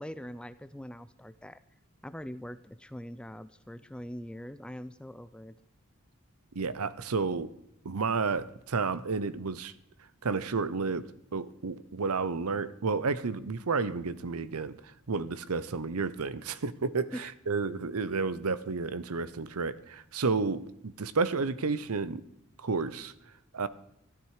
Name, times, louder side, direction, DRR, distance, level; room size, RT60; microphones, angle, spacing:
voice 1, 0.0-1.6 2.0-5.5 17.1-17.3, equal, 5° left, 13 dB, 0.4 m, -42 dB
voice 2, 6.5-7.5 7.8-9.7 10.2-22.2 22.6-23.1 23.5-23.7, right 4 dB, 85° right, 16 dB, 0.8 m, -31 dB
13.5 x 12.5 x 4.9 m, 0.81 s
head